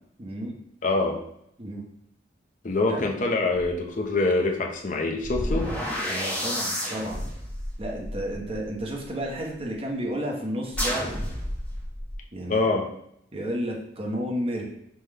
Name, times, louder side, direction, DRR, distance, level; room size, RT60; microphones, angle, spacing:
voice 1, 0.2-0.5 1.6-1.8 2.9-3.0 5.6-5.7 6.1-7.2 7.8-11.1 12.3-12.6 13.3-14.6, equal, 30° right, -1 dB, 0.8 m, -32 dB
voice 2, 0.8-1.2 2.6-5.7 12.5-12.9, left 3 dB, 40° left, 2 dB, 0.6 m, -25 dB
sound 1, 3.6-3.7 5.2-9.3 10.7-12.1, equal, 5° left, 0.7 m, -31 dB
5.4 x 2.2 x 3.3 m, 0.75 s
head